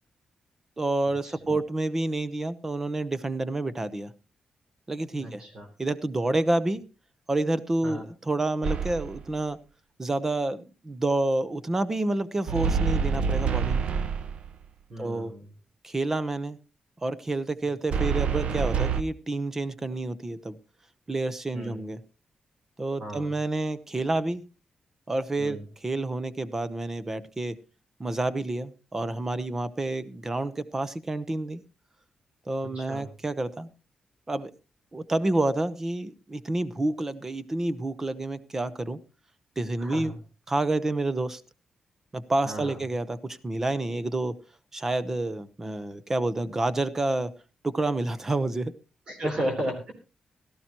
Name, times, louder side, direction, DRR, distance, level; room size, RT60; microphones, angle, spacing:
voice 1, 0.8-4.1 4.9-5.4 5.8-6.8 7.3-9.6 10.0-13.9 15.0-15.3 15.8-16.6 17.0-20.6 21.1-22.0 22.8-24.4 25.1-27.6 28.0-31.6 32.5-33.7 34.3-34.5 34.9-39.0 39.6-40.1 40.5-41.4 42.1-44.3 44.7-47.3 47.6-48.7, right 2 dB, 20° right, 15 dB, 0.8 m, -29 dB
voice 2, 5.2-5.7 7.8-8.0 14.9-15.5 21.5-21.8 23.0-23.3 25.4-25.6 32.7-33.1 39.8-40.2 42.4-42.8 49.1-49.9, equal, 45° right, 2 dB, 3.6 m, -34 dB
sound 1, 8.6-9.2 12.5-14.5 17.9-19.0, right 6 dB, 60° right, 0.8 m, -26 dB
17.0 x 13.5 x 3.0 m, 0.31 s
wide cardioid pair, 170°, 2 cm